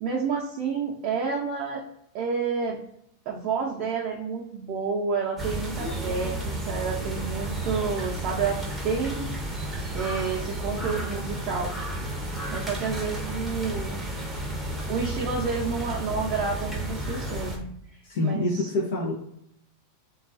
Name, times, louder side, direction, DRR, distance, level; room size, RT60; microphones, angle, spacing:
voice 1, 0.0-1.8 2.1-2.8 3.3-8.6 8.8-9.2 9.9-11.7 12.5-14.0 14.9-17.7 18.2-18.7, right 5 dB, 50° right, -3 dB, 0.5 m, -29 dB
sound 1, 5.4-17.6, right 1 dB, 10° right, 0.6 m, -32 dB
voice 2, 18.0-19.1, left 2 dB, 70° left, -2 dB, 0.5 m, -26 dB
2.3 x 2.3 x 2.4 m, 0.72 s
hypercardioid pair, 115°, 0 cm